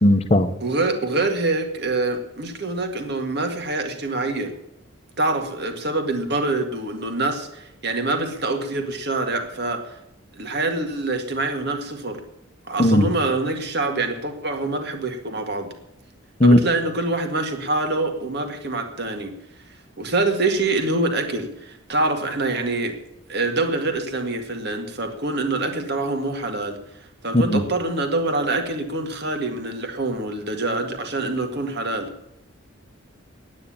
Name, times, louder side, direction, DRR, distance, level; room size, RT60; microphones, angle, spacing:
voice 1, 0.0-0.5 12.8-13.1 16.4-16.6 27.3-27.6, left 1 dB, 30° left, 0.9 m, -16 dB
voice 2, 0.6-4.5 5.2-9.8 10.4-12.2 12.7-15.7 16.4-19.3 20.0-22.9 23.3-26.8 27.2-32.1, right 2 dB, 50° right, 1.9 m, -25 dB
9.9 x 9.4 x 8.8 m
head